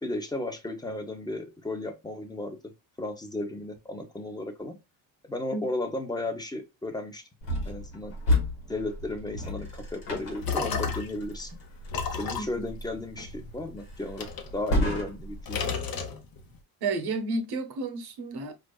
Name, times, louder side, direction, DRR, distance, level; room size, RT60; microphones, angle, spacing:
voice 1, 0.0-2.6 3.0-4.8 5.2-7.2 7.7-8.2 8.7-11.6 12.1-15.6, left 2 dB, 10° left, 0.8 m, -34 dB
sound 1, 7.4-15.5, left 1 dB, 90° left, 1.5 m, -33 dB
sound 2, 10.1-11.3 11.9-13.6 14.2-15.2 15.5-16.6, left 5 dB, 50° left, 0.9 m, -33 dB
voice 2, 12.4-12.7 16.8-18.5, right 3 dB, 60° right, 0.9 m, -31 dB
4.5 x 2.5 x 2.2 m
supercardioid pair, 75°, 44 cm